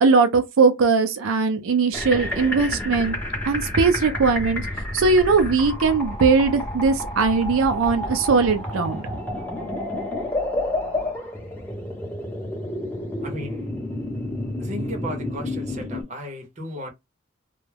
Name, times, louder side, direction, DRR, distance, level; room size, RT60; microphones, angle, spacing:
voice 1, 0.0-3.2 3.5-9.1, right 4 dB, 90° right, 0.5 m, -20 dB
sound 1, 1.9-16.0, left 1 dB, 10° left, 0.8 m, -30 dB
voice 2, 13.2-13.7 14.6-16.9, equal, 35° right, 0.7 m, -35 dB
2.3 x 2.1 x 3.2 m
head